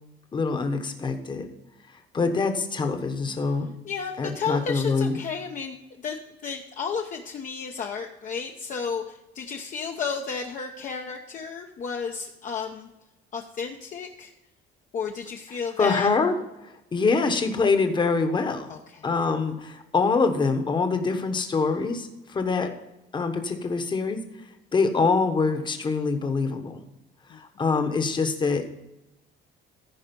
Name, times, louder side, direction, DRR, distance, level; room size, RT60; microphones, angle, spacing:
voice 1, 0.3-1.5 2.1-3.7 4.2-5.2 15.8-16.4 16.9-18.7 19.0-22.7 23.1-24.2 24.7-26.8 27.3-28.7, left 4 dB, 25° left, 7 dB, 1.1 m, -24 dB
voice 2, 3.8-12.9 13.3-14.3 14.9-16.1 18.7-19.0 27.3-27.4, left 6 dB, 40° left, 2 dB, 0.8 m, -32 dB
14.5 x 5.0 x 5.3 m, 0.94 s
cardioid pair, 150°, 20 cm